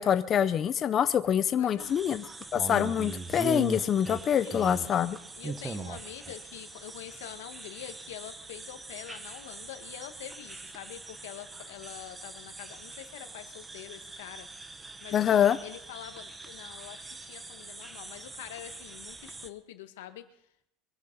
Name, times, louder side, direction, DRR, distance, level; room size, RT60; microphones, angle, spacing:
voice 1, 0.0-2.2 2.5-5.2 15.1-15.6, left 9 dB, 25° left, 11 dB, 0.4 m, -25 dB
voice 2, 1.6-2.0 4.4-5.0 5.3-14.5 15.0-20.2, left 12 dB, 90° left, 8 dB, 1.6 m, -45 dB
sound 1, 1.8-19.5, right 3 dB, 10° right, 0.7 m, -42 dB
23.0 x 11.0 x 4.0 m, 0.76 s
supercardioid pair, 170°, 0 cm